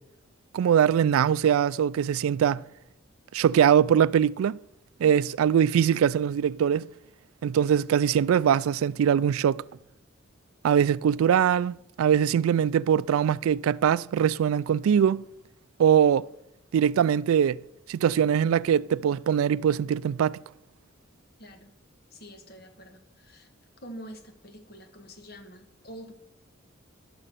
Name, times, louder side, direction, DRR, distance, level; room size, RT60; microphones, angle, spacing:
voice 1, 0.5-2.6 3.3-4.6 5.0-6.9 7.4-9.6 10.6-15.3 15.8-16.3 16.7-17.6 17.9-20.4, right 8 dB, 85° right, 0.3 m, -22 dB
voice 2, 21.4-21.7 22.1-23.5 23.8-26.1, equal, 50° left, 1.4 m, -46 dB
11.0 x 6.7 x 7.5 m
head